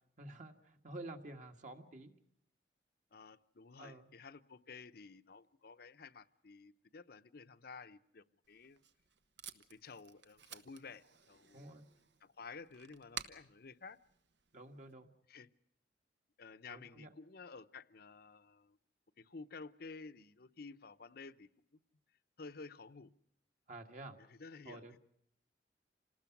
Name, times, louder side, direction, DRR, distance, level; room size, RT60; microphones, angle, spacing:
voice 1, 0.2-2.1 3.8-4.1 11.5-11.9 14.5-15.1 16.7-17.1 23.7-24.2 24.7-25.0, right 2 dB, 45° right, 4 dB, 1.9 m, -50 dB
voice 2, 3.1-8.8 9.5-11.8 12.2-14.0 15.3-15.5 16.4-18.8 19.2-21.5 22.4-23.1 24.2-25.0, left 4 dB, 60° left, 12 dB, 0.8 m, -53 dB
Packing tape duct tape, 8.4-14.9, right 8 dB, 75° right, 1.2 m, -53 dB
27.5 x 19.5 x 6.0 m, 0.71 s
head